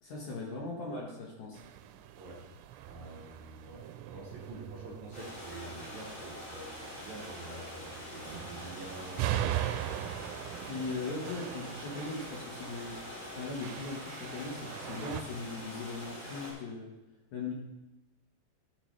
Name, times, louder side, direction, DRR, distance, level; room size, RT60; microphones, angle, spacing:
voice 1, 0.0-1.6 10.6-13.0 13.4-17.0 17.3-17.5, left 3 dB, 65° left, -4 dB, 1.9 m, -39 dB
sound 1, 1.5-15.2, right 12 dB, 90° right, 2.9 m, -40 dB
voice 2, 2.2-2.5 2.8-9.6, right 2 dB, 60° right, -3 dB, 2.1 m, -47 dB
sound 2, 5.1-16.5, left 1 dB, 20° left, 3.6 m, -45 dB
14.5 x 6.6 x 3.2 m, 0.99 s
omnidirectional pair, 5.1 m